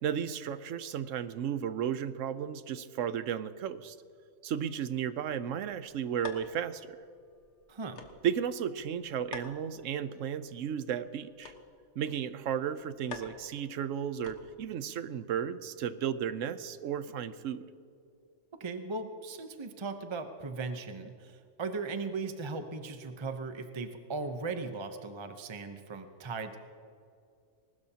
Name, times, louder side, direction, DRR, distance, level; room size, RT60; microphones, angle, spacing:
voice 1, 0.0-4.0 4.4-7.0 8.2-11.5 12.0-17.6, right 8 dB, 80° right, 13 dB, 1.1 m, -34 dB
sound 1, 5.5-14.8, left 4 dB, 65° left, 1.7 m, -50 dB
voice 2, 7.7-8.0 18.6-26.6, right 4 dB, 25° right, 7 dB, 0.8 m, -38 dB
21.0 x 19.5 x 2.9 m, 2.5 s
omnidirectional pair, 1.3 m